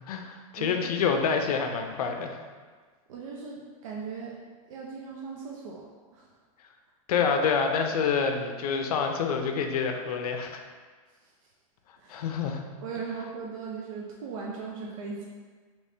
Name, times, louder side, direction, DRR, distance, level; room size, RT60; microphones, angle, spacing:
voice 1, 0.1-2.4 7.1-10.6 12.1-12.6, left 6 dB, 80° left, 4 dB, 0.5 m, -27 dB
voice 2, 3.1-4.4 4.7-6.3 11.2-11.3 12.0-12.2 12.8-15.2, right 5 dB, 60° right, -3 dB, 0.5 m, -38 dB
3.3 x 3.0 x 2.7 m, 1.5 s
supercardioid pair, 180°, 19 cm